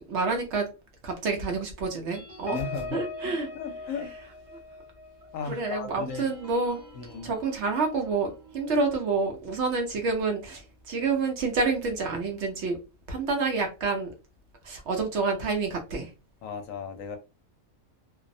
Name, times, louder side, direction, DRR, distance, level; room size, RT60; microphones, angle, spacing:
voice 1, 0.1-0.7 1.0-2.6 2.9-3.5 5.5-6.8 7.2-12.8 13.1-14.1 14.6-16.1, right 4 dB, 65° right, 0.8 m, -28 dB
sound 1, 2.1-11.1 11.5-11.7 12.0-12.3, left 2 dB, 40° right, 1.0 m, -44 dB
voice 2, 2.5-4.1 5.3-6.3 6.9-7.3 16.4-17.2, left 6 dB, 70° left, 0.9 m, -36 dB
2.6 x 2.0 x 2.5 m
omnidirectional pair, 1.5 m